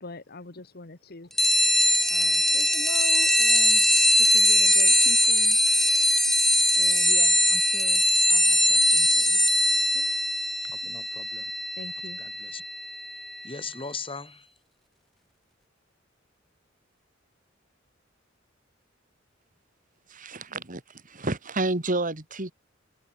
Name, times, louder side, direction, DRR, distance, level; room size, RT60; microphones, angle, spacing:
voice 1, 0.0-1.5 2.1-5.6 6.7-8.0 8.3-9.5 9.9-10.4 11.8-12.2, left 3 dB, 50° left, 1.5 m, -42 dB
sound 1, 1.4-13.5, equal, ahead, 0.6 m, -21 dB
voice 2, 10.7-11.5 12.2-12.6 13.4-14.5, left 4 dB, 30° left, 2.8 m, -39 dB
voice 3, 20.1-20.8 21.1-22.5, right 2 dB, 45° right, 2.4 m, -29 dB
head